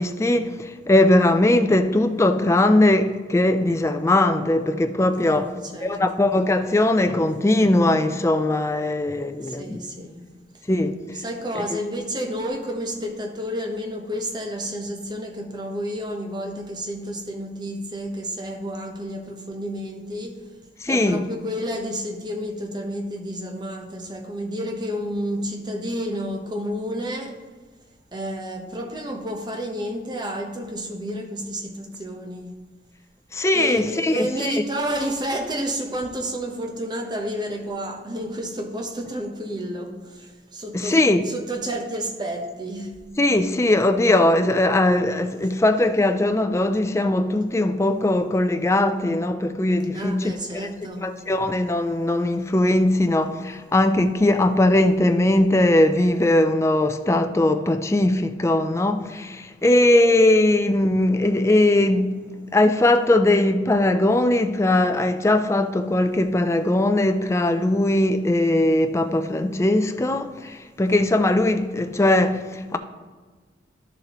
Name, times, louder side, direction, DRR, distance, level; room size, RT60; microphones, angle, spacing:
voice 1, 0.0-5.5 5.8-9.8 10.7-10.9 20.8-21.3 33.3-34.6 40.7-41.2 43.2-50.3 50.6-50.7 51.0-62.1 62.5-72.8, left 1 dB, 15° left, 0.4 m, -20 dB
voice 2, 5.2-6.0 9.4-10.3 11.1-20.5 20.9-27.4 28.1-32.6 33.5-41.0 41.2-43.0 49.9-51.1, equal, 25° right, 1.0 m, -30 dB
11.5 x 6.8 x 3.0 m
head